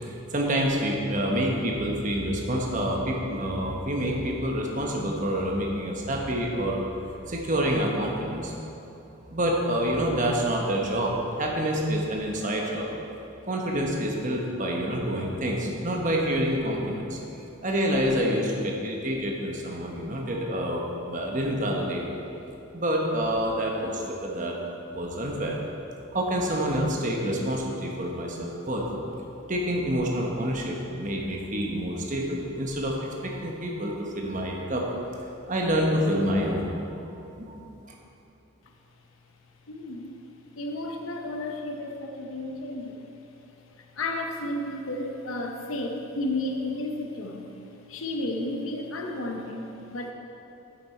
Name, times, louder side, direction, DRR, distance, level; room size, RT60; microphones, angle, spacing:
voice 1, 0.3-6.8 7.3-8.5 9.3-12.9 13.5-17.2 17.6-22.2 22.7-24.6 24.9-25.6 26.1-28.9 29.5-34.9 35.5-36.8 37.4-37.6, equal, 40° right, -1 dB, 1.0 m, -27 dB
voice 2, 39.7-40.1 40.6-43.1 43.9-47.5 47.9-50.1, left 1 dB, 75° left, 2 dB, 0.7 m, -32 dB
8.6 x 7.1 x 4.4 m, 2.9 s
head